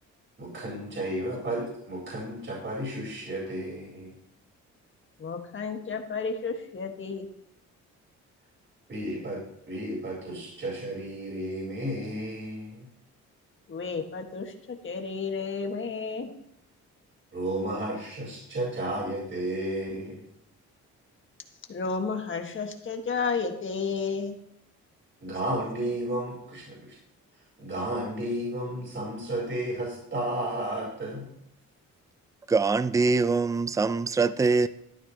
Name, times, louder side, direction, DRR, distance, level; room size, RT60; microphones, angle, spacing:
voice 1, 0.4-4.1 8.9-9.4 9.7-12.8 17.3-20.2 25.2-26.9 27.6-31.3, right 1 dB, 40° right, 4.4 m, -33 dB
voice 2, 5.2-7.3 13.7-16.3 21.7-24.4, left 5 dB, 40° left, 1.6 m, -32 dB
voice 3, 32.5-34.7, right 4 dB, 10° right, 0.4 m, -23 dB
13.0 x 11.0 x 3.0 m
cardioid pair, 90°, 30 cm